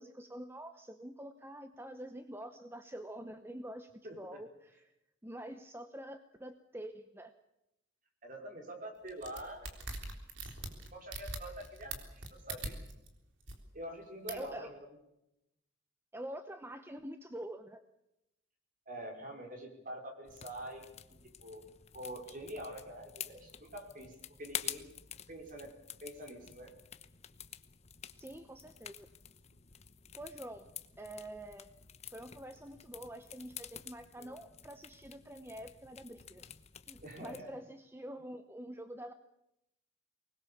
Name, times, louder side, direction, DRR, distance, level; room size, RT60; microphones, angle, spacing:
voice 1, 0.0-4.9 5.2-7.3 14.3-14.7 16.1-17.8 28.2-29.1 30.1-30.7 31.0-31.7 32.0-36.4 36.9-39.1, right 1 dB, 10° right, 8 dB, 0.8 m, -46 dB
voice 2, 4.0-4.4 8.2-9.7 10.9-11.9 12.3-12.8 13.7-14.8 18.9-20.8 21.4-21.7 21.9-24.1 24.4-24.9 25.3-25.7 26.0-26.7 34.2-34.3 37.0-37.5, right 1 dB, 45° right, 2 dB, 5.1 m, -45 dB
sound 1, 9.1-13.1 13.4-13.5 14.3-14.5, right 3 dB, 70° right, 3.7 m, -42 dB
sound 2, 20.3-37.4, left 9 dB, 35° left, 1.0 m, -49 dB
24.0 x 20.5 x 7.1 m, 0.86 s
head